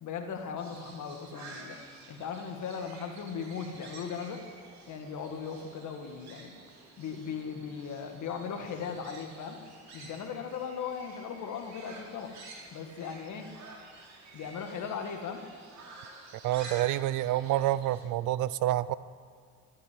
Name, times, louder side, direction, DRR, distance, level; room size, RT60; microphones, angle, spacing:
voice 1, 0.0-1.8 2.1-4.4 4.9-6.5 7.0-9.6 9.9-12.3 12.7-13.5 14.3-15.4, left 6 dB, 75° left, 5 dB, 1.7 m, -38 dB
sound 1, 0.6-18.0, right 3 dB, 65° right, 2.8 m, -50 dB
voice 2, 16.4-18.9, right 14 dB, 85° right, 18 dB, 0.5 m, -28 dB
13.5 x 6.7 x 9.6 m, 2.1 s
cardioid pair, 90°, 30 cm